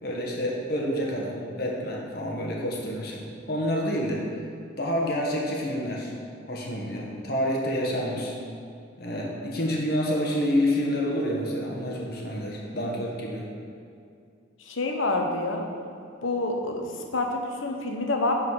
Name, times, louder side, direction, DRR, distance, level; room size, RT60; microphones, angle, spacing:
voice 1, 0.0-4.2 4.8-6.1 6.5-8.3 9.0-13.4, equal, 50° left, -2 dB, 1.3 m, -28 dB
voice 2, 14.6-15.7 16.2-18.3, left 2 dB, 85° left, 3 dB, 0.9 m, -28 dB
11.0 x 4.2 x 4.8 m, 2.4 s
head